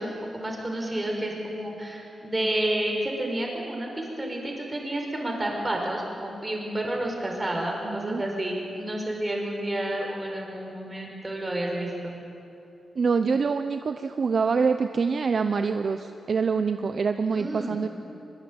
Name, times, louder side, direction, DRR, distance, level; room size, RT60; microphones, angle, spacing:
voice 1, 0.0-12.2 17.3-17.8, right 1 dB, 20° right, 0 dB, 5.3 m, -30 dB
voice 2, 7.8-8.2 13.0-17.9, right 5 dB, 50° right, 8 dB, 0.8 m, -25 dB
23.0 x 22.5 x 8.9 m, 2.7 s
wide cardioid pair, 130°, 0 cm